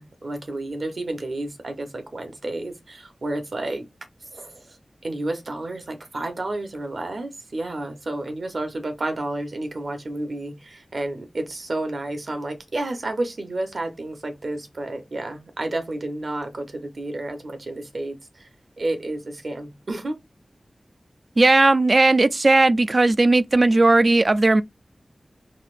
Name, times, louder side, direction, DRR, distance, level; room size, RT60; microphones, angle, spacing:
voice 1, 0.0-3.9 4.3-4.7 5.0-18.5 18.8-20.2, right 2 dB, 70° right, 1.0 m, -31 dB
voice 2, 21.4-24.6, right 2 dB, 50° right, 0.3 m, -17 dB
4.1 x 2.7 x 2.5 m
wide cardioid pair, 55°, 0 cm